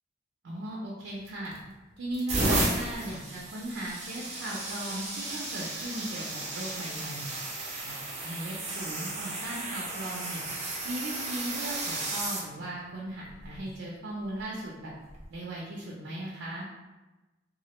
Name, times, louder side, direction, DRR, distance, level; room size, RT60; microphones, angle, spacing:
voice 1, 0.4-1.5 2.0-7.3 7.8-7.9 8.2-10.4 10.8-14.9 15.3-16.7, right 1 dB, 90° right, -4 dB, 0.5 m, -37 dB
sound 1, 1.3-1.6 2.1-12.4 13.3-13.6 15.1-15.3, right 2 dB, 40° right, 0.5 m, -34 dB
2.3 x 2.0 x 2.9 m, 1.1 s
head